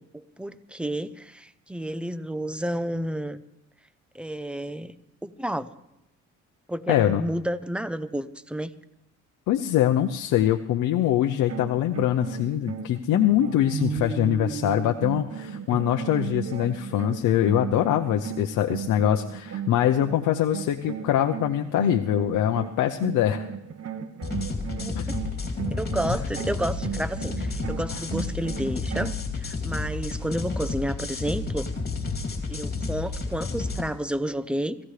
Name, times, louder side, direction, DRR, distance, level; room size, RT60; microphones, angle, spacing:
voice 1, 0.0-3.4 4.1-4.9 5.2-5.7 6.7-8.7 24.8-25.2 25.7-31.7 32.5-34.8, right 1 dB, 5° right, 14 dB, 0.7 m, -31 dB
voice 2, 6.9-7.2 9.5-23.5 24.9-25.1, left 11 dB, 85° left, 4 dB, 0.7 m, -23 dB
sound 1, 11.4-20.2 20.5-29.2, right 8 dB, 55° right, 1.1 m, -35 dB
sound 2, 24.2-33.8, left 3 dB, 30° left, 2.9 m, -31 dB
24.5 x 15.5 x 3.3 m, 0.88 s
cardioid pair, 90°, 30 cm